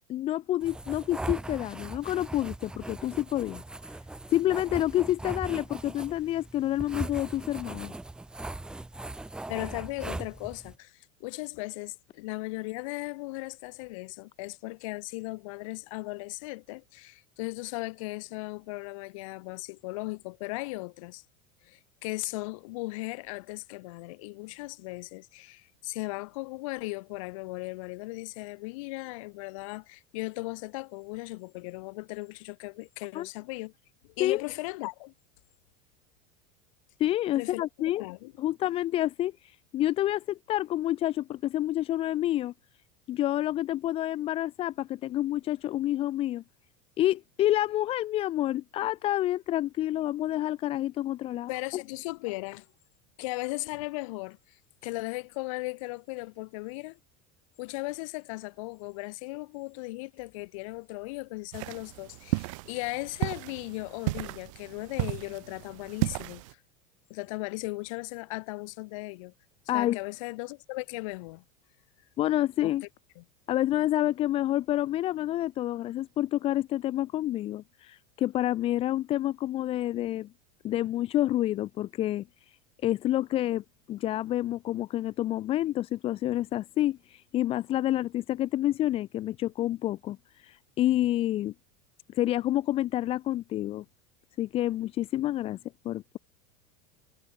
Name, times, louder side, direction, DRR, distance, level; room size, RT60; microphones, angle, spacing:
voice 1, 0.1-4.0 4.3-7.9 33.1-33.3 34.2-34.4 37.0-38.0 38.4-42.5 43.1-46.4 47.0-51.8 69.7-70.0 72.2-72.8 73.5-80.3 80.6-83.6 83.9-91.5 92.1-93.8 94.4-95.6 95.8-96.2, left 14 dB, 30° left, 3.5 m, -28 dB
sound 1, 0.6-10.8, right 2 dB, 5° right, 1.3 m, -39 dB
voice 2, 9.5-21.2 21.6-33.7 34.0-35.1 37.3-37.6 38.0-38.3 51.5-52.7 53.2-57.0 57.6-66.6 67.1-69.3 69.7-71.4 72.6-72.7 73.2-73.3, left 24 dB, 60° left, 4.2 m, -37 dB
sound 2, 61.5-66.5, right 25 dB, 60° right, 4.8 m, -34 dB
supercardioid pair, 170°, 19 cm